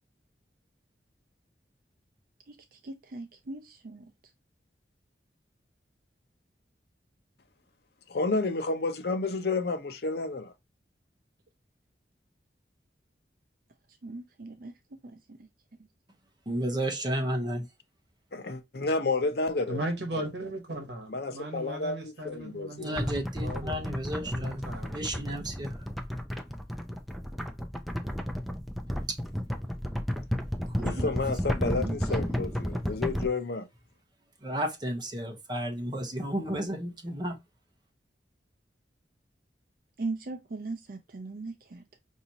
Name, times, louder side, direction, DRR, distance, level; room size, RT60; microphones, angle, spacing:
voice 1, 2.5-4.1 14.0-15.4 30.8-31.1 31.6-32.0 40.0-41.8, right 3 dB, 55° right, 0.5 m, -39 dB
voice 2, 8.1-10.5 18.3-19.8 21.1-22.9 30.8-33.7, left 3 dB, 60° left, 0.7 m, -30 dB
voice 3, 16.5-17.7 22.8-25.8 29.1-29.2 30.7-31.1 34.4-37.4, right 1 dB, 25° right, 0.9 m, -33 dB
voice 4, 19.7-25.2, right 1 dB, 70° right, 1.1 m, -38 dB
sound 1, 23.0-33.2, equal, ahead, 0.4 m, -32 dB
4.9 x 2.7 x 2.8 m
head